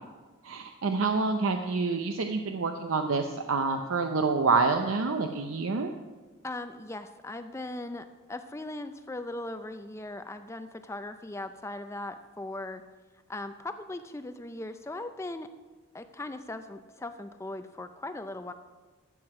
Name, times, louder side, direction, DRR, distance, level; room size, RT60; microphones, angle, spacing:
voice 1, 0.4-5.9, right 4 dB, 80° right, 5 dB, 0.6 m, -27 dB
voice 2, 6.4-12.9 13.3-15.5 15.9-18.5, left 2 dB, 15° left, 9 dB, 0.4 m, -39 dB
12.0 x 7.9 x 4.8 m, 1.3 s
head